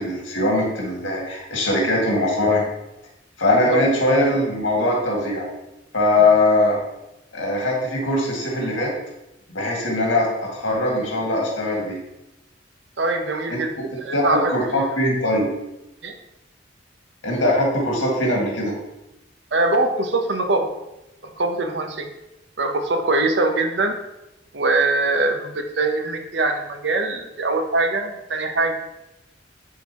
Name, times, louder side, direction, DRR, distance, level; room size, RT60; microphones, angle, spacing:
voice 1, 0.0-2.6 3.4-5.5 5.9-6.8 7.3-8.9 9.5-12.0 13.5-13.6 14.1-15.5 17.2-18.8, left 1 dB, 85° left, -2 dB, 2.1 m, -21 dB
voice 2, 13.0-13.7 14.0-14.5 16.0-16.1 19.5-20.7 21.2-22.1 22.6-24.0 24.5-28.7, right 2 dB, 65° right, 6 dB, 0.8 m, -22 dB
10.5 x 3.9 x 3.0 m, 0.92 s
head